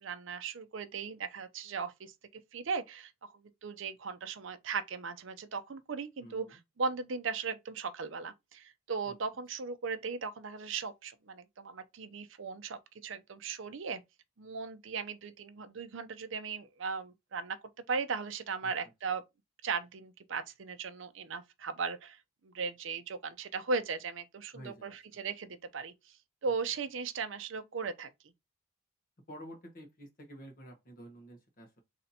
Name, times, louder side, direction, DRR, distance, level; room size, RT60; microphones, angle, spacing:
voice 1, 0.0-14.0 14.4-17.6 17.9-19.2 19.6-26.2 26.4-28.1, right 5 dB, 60° right, 0.5 m, -37 dB
voice 2, 24.5-24.9 26.4-26.5 29.3-31.8, equal, 40° left, 1.2 m, -49 dB
3.3 x 2.7 x 4.1 m
head